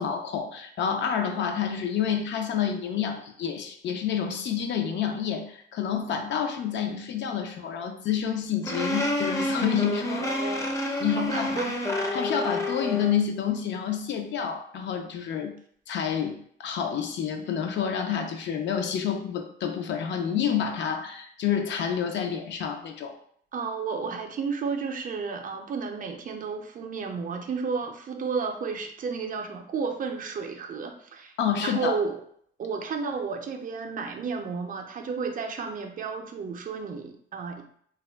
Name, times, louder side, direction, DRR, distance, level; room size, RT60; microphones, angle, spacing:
voice 1, 0.0-10.5 11.0-11.6 12.1-15.5 15.9-23.2 31.4-32.0, left 8 dB, 65° left, 5 dB, 0.5 m, -29 dB
sound 1, 8.6-13.2, left 1 dB, 15° left, 0.5 m, -29 dB
voice 2, 10.2-11.8 23.5-31.3 31.6-32.2 32.6-37.6, right 5 dB, 45° right, 4 dB, 0.4 m, -32 dB
2.3 x 2.1 x 3.3 m, 0.63 s
cardioid pair, 90°, 20 cm